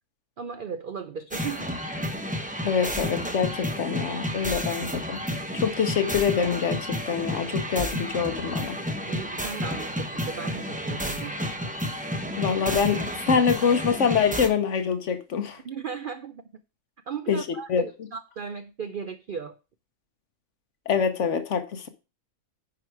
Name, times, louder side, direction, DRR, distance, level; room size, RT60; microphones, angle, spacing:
voice 1, 0.4-1.8 9.1-11.6 15.6-16.4 17.1-19.6, right 6 dB, 65° right, 0.5 m, -36 dB
sound 1, 1.3-14.5, equal, 10° right, 0.6 m, -31 dB
voice 2, 2.6-5.2 5.5-8.8 12.4-15.6 17.3-17.4 17.7-17.8 20.9-21.9, left 6 dB, 60° left, 1.1 m, -25 dB
10.0 x 4.8 x 4.6 m
omnidirectional pair, 1.5 m